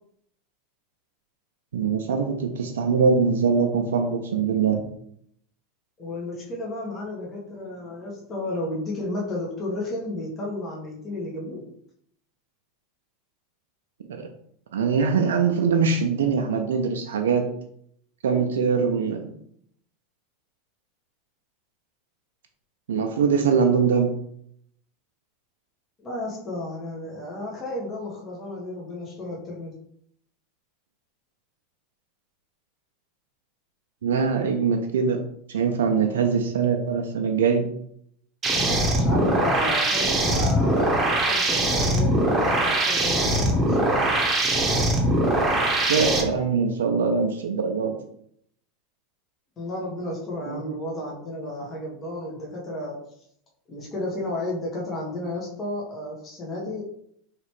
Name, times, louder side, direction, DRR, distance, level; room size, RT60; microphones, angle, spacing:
voice 1, 1.7-4.8 14.7-17.5 18.2-19.3 22.9-24.2 34.0-35.2 35.5-37.7 45.9-48.0 50.5-50.6, right 5 dB, 85° right, 3 dB, 0.4 m, -22 dB
voice 2, 6.0-11.6 26.0-29.8 38.5-43.8 49.6-53.0 53.7-56.9, left 1 dB, 30° left, -3 dB, 1.1 m, -33 dB
sound 1, 38.4-46.2, right 1 dB, 25° right, 0.8 m, -22 dB
3.2 x 2.8 x 3.0 m, 0.69 s
hypercardioid pair, 105°, 0 cm